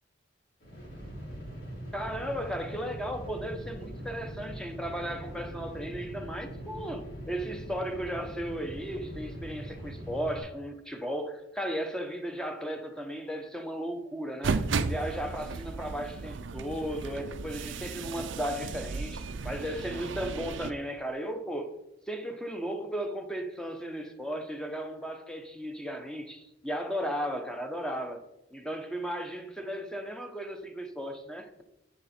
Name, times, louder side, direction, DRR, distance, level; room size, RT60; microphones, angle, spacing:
sound 1, 0.6-10.4, equal, 65° left, 3.4 m, -42 dB
voice 1, 1.9-21.7 22.1-28.2 28.5-31.6, equal, 5° left, 0.9 m, -35 dB
sound 2, 14.4-20.7, right 4 dB, 75° right, 0.5 m, -34 dB
9.7 x 7.6 x 4.3 m
head